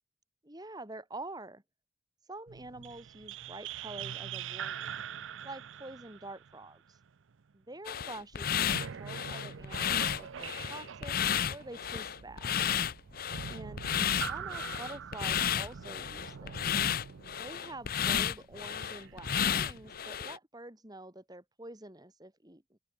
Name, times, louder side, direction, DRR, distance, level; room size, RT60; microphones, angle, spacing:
voice 1, 0.4-1.6 2.3-5.0 5.4-7.0 7.5-11.2 11.4-12.5 13.5-13.8 14.2-16.8 17.4-22.8, right 2 dB, 20° right, 3.1 m, -47 dB
sound 1, 2.5-7.5 8.5-20.0, right 7 dB, 75° right, 0.5 m, -44 dB
sound 2, 7.9-20.4, left 8 dB, 50° left, 0.6 m, -32 dB
open air
head